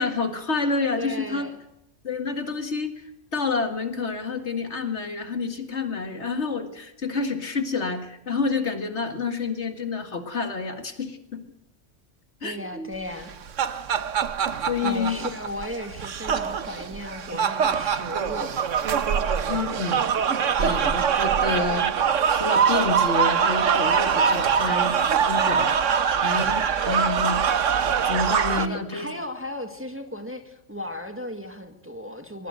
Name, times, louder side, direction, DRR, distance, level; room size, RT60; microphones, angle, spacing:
voice 1, 0.0-1.5 2.0-11.4 12.4-12.9 14.7-15.3 19.5-20.0 20.3-27.4 28.0-29.1, left 4 dB, 65° left, 7 dB, 2.2 m, -29 dB
voice 2, 1.0-1.6 12.4-13.3 14.8-18.6 28.5-32.5, left 1 dB, 10° right, 5 dB, 1.9 m, -35 dB
sound 1, 13.2-28.7, right 7 dB, 85° right, 1.4 m, -23 dB
22.5 x 22.0 x 6.6 m, 0.83 s
omnidirectional pair, 1.3 m